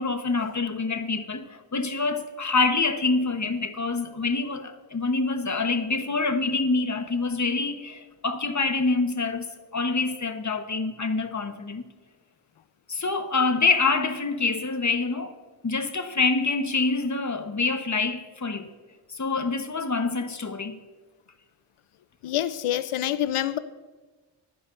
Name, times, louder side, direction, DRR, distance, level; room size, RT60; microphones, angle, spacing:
voice 1, 0.0-11.8 12.9-15.4 15.6-18.7 19.1-20.8, left 3 dB, 35° left, 1.2 m, -26 dB
voice 2, 22.2-23.6, left 12 dB, 80° left, 0.7 m, -26 dB
24.5 x 9.9 x 2.6 m
cardioid pair, 50°, 50 cm